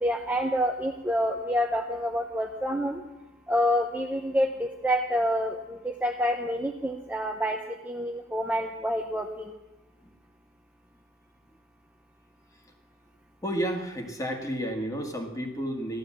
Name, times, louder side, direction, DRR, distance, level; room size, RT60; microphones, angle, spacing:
voice 1, 0.0-3.0 3.5-7.6 7.8-9.5, equal, 10° right, 1 dB, 0.9 m, -27 dB
voice 2, 13.4-16.0, right 1 dB, 15° left, 3 dB, 2.2 m, -31 dB
15.0 x 12.5 x 7.6 m, 0.94 s
head